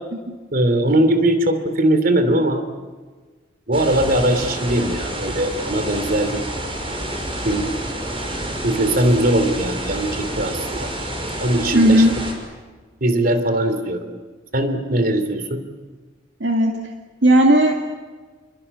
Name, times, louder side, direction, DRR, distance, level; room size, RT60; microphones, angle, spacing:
voice 1, 0.5-2.6 3.7-6.4 7.4-7.7 8.6-10.9 11.4-12.1 13.0-14.0 14.5-15.6, right 1 dB, 50° right, 10 dB, 3.1 m, -20 dB
sound 1, 3.7-12.3, right 1 dB, 30° right, 6.3 m, -28 dB
voice 2, 11.7-12.1 16.4-16.7 17.2-17.8, right 1 dB, 65° right, 2 dB, 2.3 m, -14 dB
28.5 x 24.0 x 8.4 m, 1.4 s
head